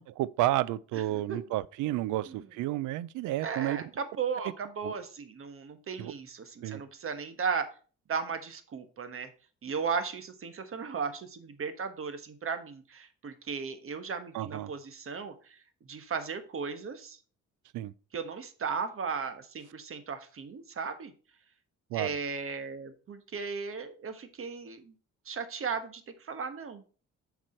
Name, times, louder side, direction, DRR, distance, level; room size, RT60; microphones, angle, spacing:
voice 1, 0.0-3.8 4.8-4.9 6.0-6.1 6.6-6.8 14.3-14.7 17.7-17.9 21.9-22.1, right 15 dB, 85° right, 0.4 m, -31 dB
voice 2, 0.9-1.4 2.3-2.4 3.4-7.7 8.1-9.3 9.6-17.2 18.1-21.1 21.9-24.9 25.2-26.8, right 5 dB, 45° right, 1.2 m, -36 dB
7.5 x 4.8 x 4.3 m
cardioid pair, 90°, 30 cm